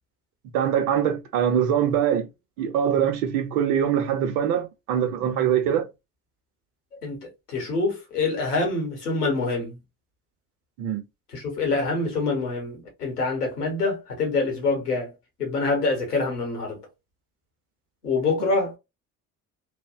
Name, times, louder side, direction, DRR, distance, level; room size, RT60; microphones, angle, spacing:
voice 1, 0.5-2.3 2.6-5.9 10.8-11.0, right 9 dB, 70° right, 0.8 m, -23 dB
voice 2, 7.0-9.8 11.3-15.1 15.4-16.8 18.0-18.8, left 3 dB, 90° left, 1.0 m, -26 dB
3.1 x 2.1 x 2.3 m
figure-of-eight pair, 50°, 46 cm